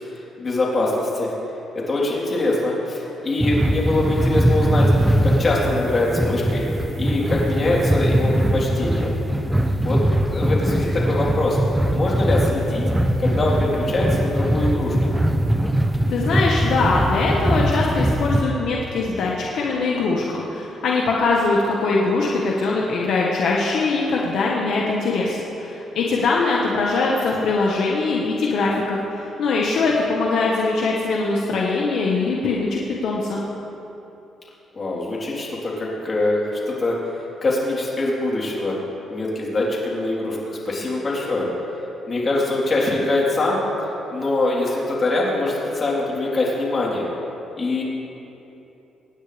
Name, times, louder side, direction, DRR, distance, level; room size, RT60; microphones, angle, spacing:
voice 1, 0.4-1.3 1.8-4.9 5.2-6.6 7.0-9.1 9.8-10.0 10.3-11.6 11.9-12.8 13.2-15.0 26.2-26.3 29.6-29.9 34.7-37.0 37.4-38.8 39.1-41.5 42.1-43.6 44.1-47.1 47.6-47.8, left 2 dB, 35° left, -4 dB, 3.8 m, -23 dB
sound 1, 3.4-18.4, right 1 dB, 10° right, 0.8 m, -21 dB
voice 2, 16.1-33.4, left 3 dB, 70° left, -3 dB, 1.5 m, -22 dB
25.0 x 9.8 x 3.5 m, 3.0 s
cardioid pair, 90°, 0 cm